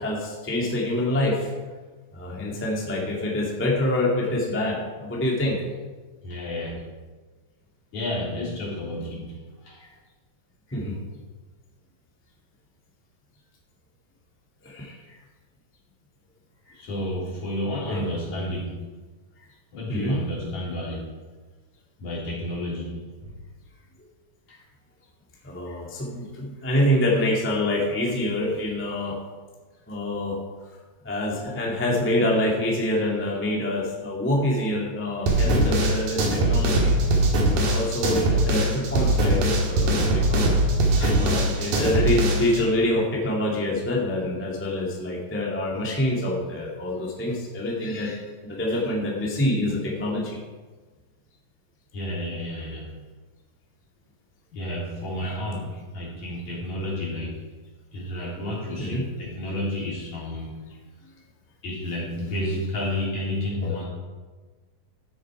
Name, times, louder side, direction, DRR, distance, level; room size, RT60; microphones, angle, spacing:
voice 1, 0.0-1.5 2.1-5.6 10.7-11.0 14.6-15.2 17.9-18.1 19.9-20.2 25.4-29.2 29.9-30.4 31.0-36.9 37.5-40.4 41.0-50.4 55.2-55.4 58.8-59.1 59.5-59.6 63.6-63.8, left 1 dB, 5° left, -3 dB, 1.1 m, -26 dB
voice 2, 6.2-6.7 7.9-9.2 9.6-9.8 16.7-18.7 19.7-21.1 22.0-22.9 23.2-23.3 51.9-52.8 54.5-55.6 55.9-57.4 57.9-60.5 61.6-63.9, left 1 dB, 55° left, -6 dB, 4.7 m, -30 dB
sound 1, 35.3-42.6, right 1 dB, 75° right, 3.3 m, -21 dB
14.0 x 7.0 x 4.8 m, 1.3 s
omnidirectional pair, 4.0 m